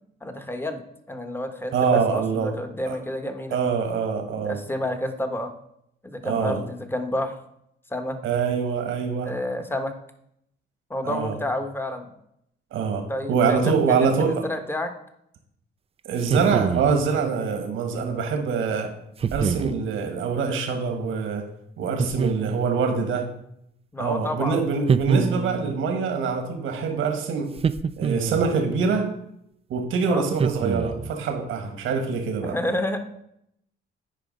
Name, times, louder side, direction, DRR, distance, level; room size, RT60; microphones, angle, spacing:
voice 1, 0.2-0.8 1.1-3.6 4.4-5.5 6.0-7.3 7.9-8.2 9.2-9.9 10.9-12.1 13.1-13.8 14.2-14.9 21.8-22.1 23.9-24.7 30.1-30.2 32.4-33.0, left 1 dB, 10° left, 7 dB, 1.2 m, -29 dB
voice 2, 1.7-2.5 2.9-3.0 3.5-4.6 6.2-6.6 8.2-9.3 11.0-11.4 12.7-14.4 16.0-18.9 19.3-21.4 21.8-23.3 24.0-27.5 28.0-29.1 29.7-32.6, right 5 dB, 80° right, 5 dB, 1.5 m, -24 dB
sound 1, 16.2-17.0 19.2-19.8 22.0-22.8 24.9-25.8 27.6-28.6 30.4-31.2, right 6 dB, 30° right, 0.4 m, -25 dB
9.2 x 4.9 x 5.2 m, 0.75 s
cardioid pair, 90°, 20 cm